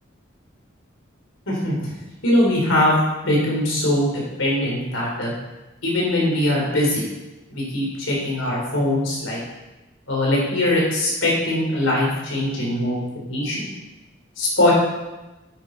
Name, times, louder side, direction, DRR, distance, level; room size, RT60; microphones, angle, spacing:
voice 1, 2.2-2.9 3.2-4.1 4.4-5.3 5.8-7.0 7.5-9.4 10.1-13.0 13.3-13.6 14.4-14.7, left 1 dB, 75° left, -3 dB, 4.0 m, -21 dB
10.0 x 8.9 x 4.7 m, 1.1 s
head